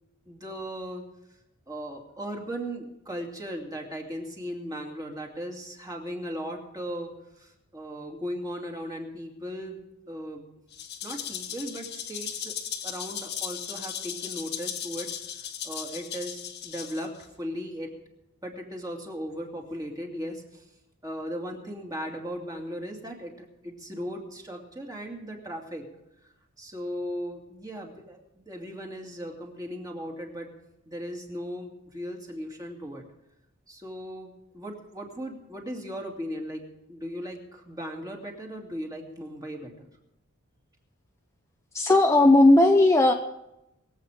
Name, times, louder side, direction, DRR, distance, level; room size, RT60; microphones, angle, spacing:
voice 1, 0.3-1.1 1.7-9.8 10.1-10.4 11.0-12.5 12.8-18.0 18.4-20.6 21.0-25.9 26.6-30.5 30.9-33.0 33.7-39.9, equal, 15° right, 1 dB, 2.4 m, -37 dB
Rattle (instrument), 10.7-17.2, left 9 dB, 50° left, 1.4 m, -37 dB
voice 2, 41.7-43.1, left 2 dB, 15° left, 3 dB, 0.7 m, -17 dB
22.0 x 8.3 x 5.0 m, 0.89 s
head